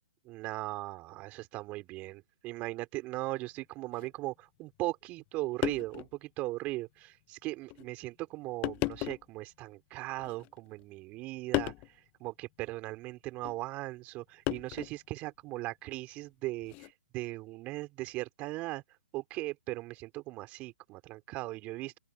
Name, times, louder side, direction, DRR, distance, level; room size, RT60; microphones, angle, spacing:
voice 1, 0.2-18.8 19.1-22.0, right 19 dB, 25° right, 3.9 m, -38 dB
sound 1, 3.9-4.1 5.2-5.3 5.6-6.1 6.7-6.8 7.7-7.9 8.6-9.3 10.2-10.8 11.5-11.9 13.4-13.6 14.5-15.1 16.6-16.9, left 25 dB, 25° left, 0.7 m, -35 dB
open air
figure-of-eight pair, 130°, 6 cm